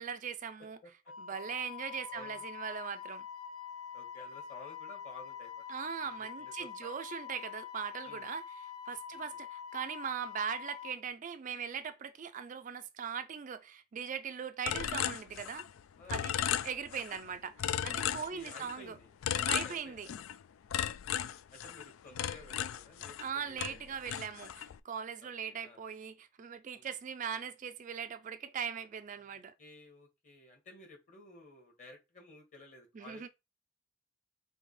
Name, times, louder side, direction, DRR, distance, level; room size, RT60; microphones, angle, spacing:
voice 1, 0.0-0.8 1.2-3.3 5.7-15.7 16.1-16.3 16.6-18.9 19.5-20.1 23.2-29.5 32.9-33.3, right 7 dB, 40° right, 0.3 m, -40 dB
voice 2, 0.8-1.1 2.1-2.4 3.9-7.0 8.0-8.3 9.1-9.4 14.6-14.7 16.0-16.2 18.1-20.1 21.5-24.0 25.2-25.8 26.7-26.9 29.3-33.3, left 2 dB, 40° left, 1.5 m, -54 dB
Wind instrument woodwind instrument, 1.1-11.0, left 8 dB, 60° left, 2.1 m, -45 dB
sound 1, 14.7-15.8 16.1-17.2 17.6-18.8 19.2-20.4 20.7-23.3 23.6-24.8, left 10 dB, 85° left, 0.3 m, -35 dB
5.1 x 2.8 x 3.1 m
head